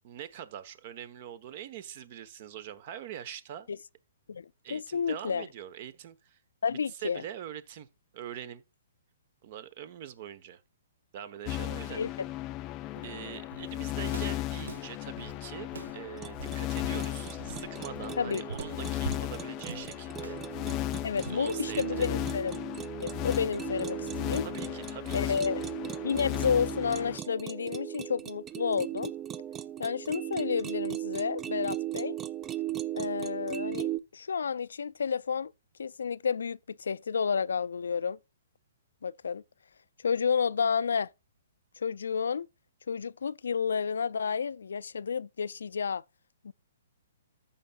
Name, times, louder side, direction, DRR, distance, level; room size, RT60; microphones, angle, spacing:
voice 1, 0.0-3.7 4.6-6.4 6.7-7.9 8.1-8.6 9.4-10.6 11.1-12.0 13.0-20.6 21.2-22.2 24.4-25.5, right 10 dB, 45° right, 1.1 m, -43 dB
voice 2, 4.3-5.4 6.6-7.2 11.9-12.1 18.2-18.4 21.0-22.5 23.0-24.5 25.1-25.6 26.0-29.1 29.8-32.2 32.9-35.5 35.8-38.2 39.0-39.4 40.0-41.1 41.8-42.5 42.9-46.0 46.4-46.5, left 6 dB, 80° left, 0.3 m, -31 dB
sound 1, 11.5-27.2, left 16 dB, 30° left, 0.5 m, -36 dB
Walk footsteps, 12.9-22.2, right 5 dB, 80° right, 0.5 m, -44 dB
sound 2, 16.2-34.0, right 12 dB, 20° right, 0.5 m, -38 dB
14.5 x 5.6 x 2.4 m
hypercardioid pair, 140°, 0 cm